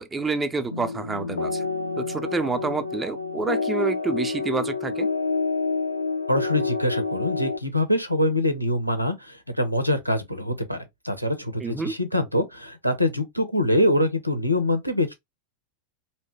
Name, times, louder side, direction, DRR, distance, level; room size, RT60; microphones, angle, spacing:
voice 1, 0.0-1.7 2.0-5.1 11.6-11.9, right 4 dB, 15° right, 0.4 m, -28 dB
sound 1, 0.7-7.6, left 4 dB, 80° left, 0.3 m, -28 dB
voice 2, 6.3-15.1, left 1 dB, 90° right, 0.5 m, -24 dB
2.7 x 2.1 x 3.0 m
figure-of-eight pair, 90°, 0 cm